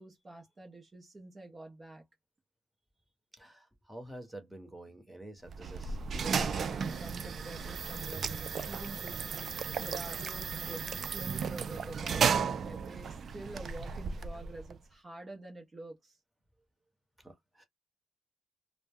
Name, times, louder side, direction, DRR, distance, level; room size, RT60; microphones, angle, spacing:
voice 1, 0.0-2.0 6.6-16.2, right 2 dB, 25° right, 0.7 m, -48 dB
voice 2, 3.4-6.0 17.2-17.6, right 1 dB, 5° right, 1.0 m, -48 dB
sound 1, 5.5-14.8, right 6 dB, 50° right, 0.3 m, -34 dB
2.1 x 2.1 x 3.4 m
cardioid pair, 90°, 0 cm